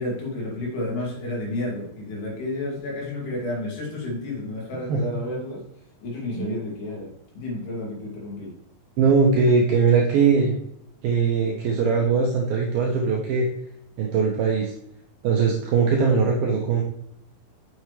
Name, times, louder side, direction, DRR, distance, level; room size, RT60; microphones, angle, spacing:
voice 1, 0.0-5.6 6.0-8.5, left 1 dB, 65° left, -4 dB, 4.0 m, -31 dB
voice 2, 4.9-5.2 6.4-6.6 9.0-10.6 11.0-13.5 14.0-14.7 15.2-16.8, right 5 dB, 80° right, 0 dB, 2.1 m, -21 dB
7.1 x 6.6 x 3.1 m, 0.77 s
omnidirectional pair, 5.1 m